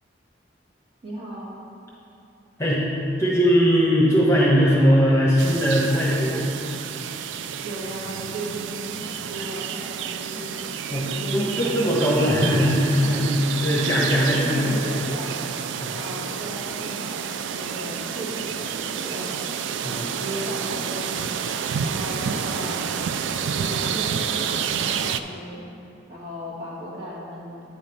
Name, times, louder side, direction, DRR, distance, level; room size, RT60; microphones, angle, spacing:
voice 1, 1.0-1.5 7.6-10.5 11.1-12.3 13.0-13.6 14.3-15.4 15.9-19.4 20.1-22.8 23.5-25.6 26.1-27.7, right 1 dB, 30° right, -6 dB, 1.6 m, -36 dB
voice 2, 3.2-6.5 10.9-13.3 13.6-14.9 15.8-16.0 19.8-20.1, equal, 15° left, -5 dB, 1.1 m, -20 dB
sound 1, 5.4-25.2, right 7 dB, 85° right, 0.3 m, -29 dB
8.9 x 5.3 x 5.3 m, 2.9 s
head